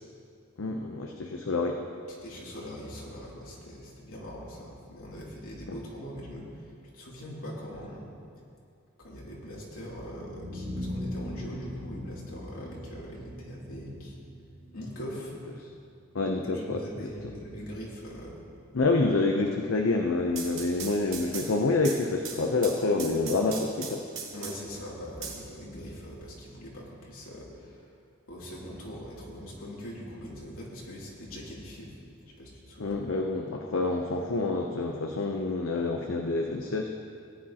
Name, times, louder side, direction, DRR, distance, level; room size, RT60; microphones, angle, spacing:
voice 1, 0.6-1.8 5.7-5.8 12.6-12.7 16.1-17.1 18.7-24.0 32.8-36.9, left 3 dB, 70° left, 2 dB, 0.7 m, -27 dB
voice 2, 2.2-8.1 9.0-14.2 14.7-15.4 16.5-18.4 24.3-27.8 28.3-31.9 32.2-33.0, equal, 85° left, -5 dB, 2.8 m, -42 dB
sound 1, 10.1-15.9, left 1 dB, 20° right, 1.9 m, -40 dB
sound 2, 20.1-24.8 25.2-26.2, right 5 dB, 70° right, 2.3 m, -40 dB
17.5 x 9.9 x 2.9 m, 2.3 s
head